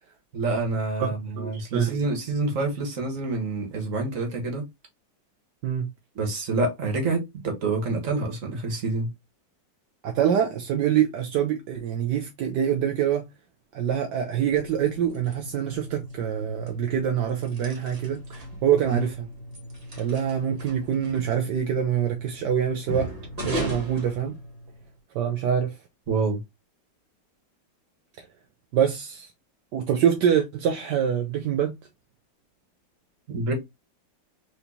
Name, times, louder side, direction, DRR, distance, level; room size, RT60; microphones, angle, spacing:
voice 1, 0.3-4.7 6.2-9.1 18.9-19.0 26.1-26.4 33.3-33.5, right 3 dB, 50° right, 1.8 m, -27 dB
voice 2, 1.0-2.0 5.6-5.9 10.0-13.3 13.7-19.3 20.0-23.1 23.4-24.4 25.1-25.8 28.2-28.3 28.7-29.3 29.7-31.8, right 9 dB, 75° right, 1.3 m, -25 dB
sound 1, 14.4-24.9, right 1 dB, 20° right, 1.6 m, -38 dB
4.5 x 3.8 x 2.7 m
omnidirectional pair, 1.9 m